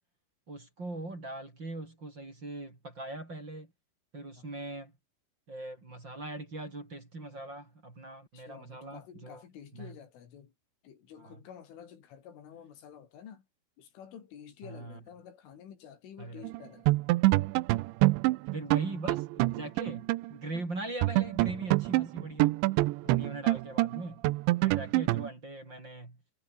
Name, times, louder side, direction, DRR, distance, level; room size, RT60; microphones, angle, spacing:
voice 1, 0.5-3.7 4.1-4.9 5.5-9.4 9.7-10.0 11.2-11.4 14.6-15.0 16.2-16.4 18.5-22.5 23.0-24.2 24.6-26.2, right 2 dB, 25° right, 5.3 m, -41 dB
voice 2, 8.3-10.5 10.8-13.5 13.8-17.0 23.0-23.4 24.7-24.8, left 8 dB, 75° left, 5.9 m, -50 dB
sound 1, 16.4-16.6 16.9-20.3 20.6-20.7 21.0-25.3, right 19 dB, 80° right, 2.8 m, -26 dB
omnidirectional pair, 5.8 m